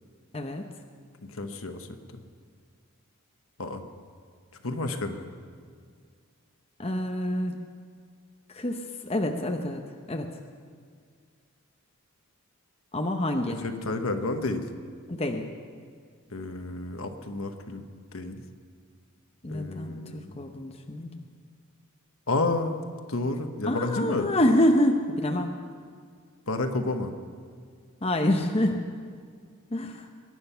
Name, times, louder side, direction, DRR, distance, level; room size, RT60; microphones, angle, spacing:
voice 1, 0.3-0.7 6.8-7.6 8.5-10.3 12.9-13.6 15.1-15.5 19.4-21.1 23.6-25.6 28.0-28.8 29.7-30.1, left 1 dB, 25° left, 4 dB, 0.8 m, -27 dB
voice 2, 1.2-2.2 3.6-3.8 4.6-5.3 13.5-14.7 16.3-17.8 18.1-18.4 19.5-20.3 22.3-24.3 26.5-27.1, left 2 dB, 70° left, 6 dB, 1.2 m, -31 dB
22.0 x 10.0 x 5.7 m, 2.1 s
head